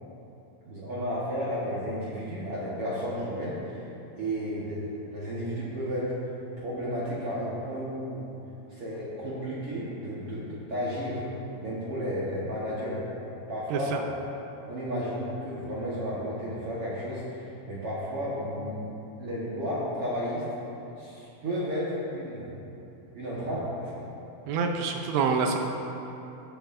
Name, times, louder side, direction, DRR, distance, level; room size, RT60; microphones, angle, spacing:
voice 1, 0.6-3.8 4.1-6.1 6.6-8.3 8.7-11.2 11.6-13.0 13.5-14.1 14.7-20.5 21.0-22.6 23.1-24.0, equal, 65° right, -9 dB, 1.4 m, -33 dB
voice 2, 13.7-14.0 24.5-25.6, right 5 dB, 85° right, 3 dB, 2.7 m, -26 dB
19.5 x 7.1 x 2.6 m, 2.9 s
omnidirectional pair, 4.8 m